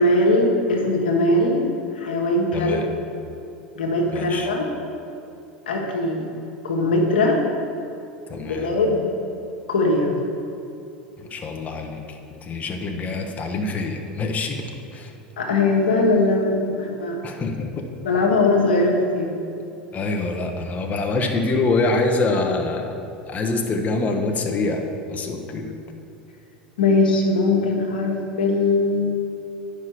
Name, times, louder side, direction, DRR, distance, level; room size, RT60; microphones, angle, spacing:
voice 1, 0.0-1.7 1.9-2.8 3.7-4.7 5.7-6.3 6.6-7.4 8.4-9.1 9.7-10.1 15.4-17.2 18.0-19.3 25.6-25.7 26.8-29.2, left 2 dB, 85° left, -1 dB, 1.3 m, -20 dB
voice 2, 2.5-2.9 4.1-4.5 8.3-8.7 11.2-15.1 17.2-17.9 19.9-22.9 23.3-25.7, left 3 dB, 30° left, 2 dB, 1.0 m, -25 dB
9.6 x 5.8 x 4.7 m, 2.7 s
hypercardioid pair, 90°, 5 cm